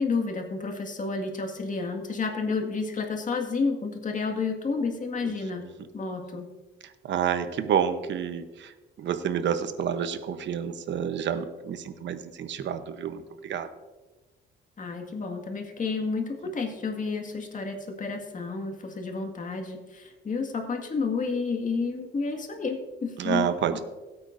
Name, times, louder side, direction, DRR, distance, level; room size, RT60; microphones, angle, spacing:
voice 1, 0.0-5.6 5.9-6.5 14.8-23.5, left 4 dB, 40° left, 3 dB, 1.9 m, -30 dB
voice 2, 6.8-13.7 23.2-23.8, right 8 dB, 65° right, 10 dB, 0.9 m, -29 dB
16.5 x 8.7 x 2.6 m, 1.2 s
cardioid pair, 90°, 20 cm